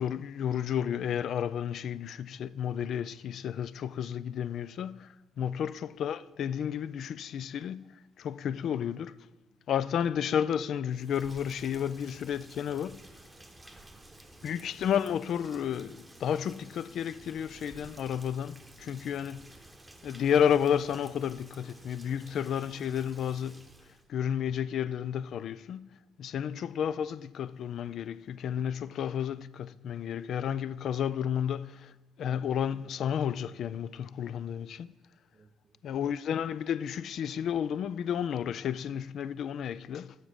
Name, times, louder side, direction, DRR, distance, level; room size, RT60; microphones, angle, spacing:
voice 1, 0.0-7.9 8.2-9.3 9.7-13.0 14.4-19.5 20.0-23.7 24.1-25.9 26.2-31.9 32.2-34.9 35.8-40.2, left 8 dB, 60° left, 0.3 m, -32 dB
Rain, 10.9-24.1, right 1 dB, 10° right, 1.0 m, -53 dB
voice 2, 13.3-14.3 18.8-19.0 26.2-26.3 35.3-36.0, right 4 dB, 30° right, 0.6 m, -63 dB
7.3 x 6.1 x 6.4 m
cardioid pair, 100°, 0 cm